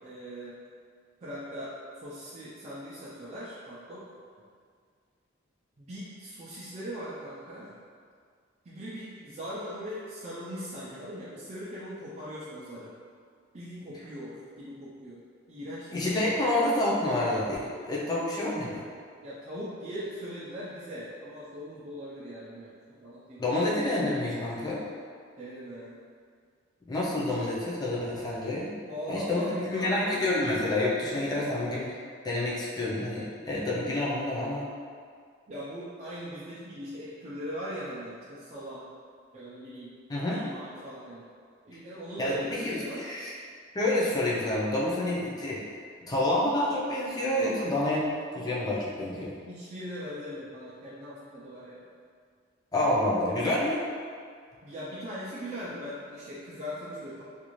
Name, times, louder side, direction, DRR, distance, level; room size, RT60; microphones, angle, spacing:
voice 1, 0.0-0.6 1.2-1.7 2.0-4.0 5.8-7.8 8.6-12.9 13.5-15.2 15.5-16.4 19.2-23.5 25.4-26.0 28.7-30.3 35.5-38.9 39.3-39.9 40.3-41.3 41.6-43.1 49.5-51.9 54.6-57.2, equal, 35° right, -9 dB, 0.4 m, -40 dB
voice 2, 15.9-18.8 23.4-24.8 26.9-28.7 29.1-31.9 32.2-34.7 40.1-40.4 42.2-43.3 43.7-45.6 46.1-49.3 52.7-53.8, left 1 dB, 20° left, -6 dB, 0.5 m, -28 dB
2.5 x 2.4 x 3.0 m, 2.1 s
head